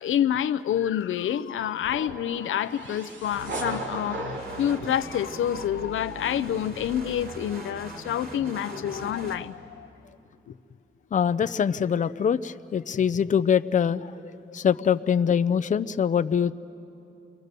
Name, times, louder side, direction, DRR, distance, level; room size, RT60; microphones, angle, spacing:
voice 1, 0.0-9.9, left 10 dB, 90° left, 13 dB, 0.6 m, -28 dB
sound 1, 1.9-5.9, right 1 dB, 70° right, 2.7 m, -37 dB
sound 2, 3.2-9.4, right 2 dB, 50° right, 2.6 m, -41 dB
voice 2, 11.1-16.5, left 7 dB, 40° left, 11 dB, 0.5 m, -24 dB
28.5 x 22.5 x 6.7 m, 2.8 s
cardioid pair, 105°, 20 cm